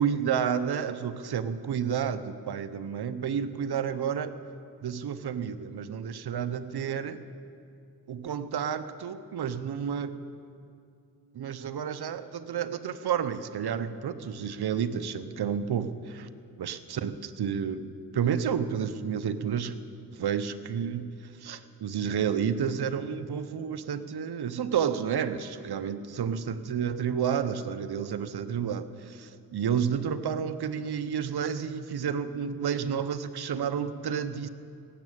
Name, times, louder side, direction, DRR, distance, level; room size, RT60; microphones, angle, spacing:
voice 1, 0.0-4.3 4.8-7.2 8.1-10.2 11.3-16.3 16.6-17.8 18.1-19.7 20.1-21.1 21.4-34.5, right 7 dB, 70° right, 12 dB, 0.8 m, -30 dB
17.5 x 7.5 x 8.7 m, 2.4 s
cardioid pair, 45°, 40 cm